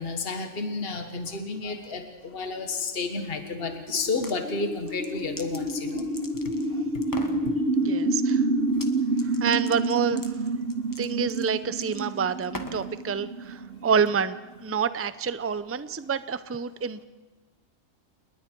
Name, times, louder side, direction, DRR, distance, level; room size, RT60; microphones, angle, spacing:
voice 1, 0.0-6.1, left 4 dB, 50° left, 6 dB, 1.8 m, -31 dB
sound 1, 2.6-14.7, right 2 dB, 60° right, 1.9 m, -29 dB
sound 2, 4.0-4.4 4.9-6.7 7.0-7.4 8.7-8.9 9.2-12.9, left 2 dB, 15° left, 1.3 m, -42 dB
voice 2, 7.1-8.5 9.2-10.4 11.0-17.0, right 6 dB, 20° right, 14 dB, 0.3 m, -28 dB
29.0 x 20.5 x 4.6 m, 1.2 s
omnidirectional pair, 1.4 m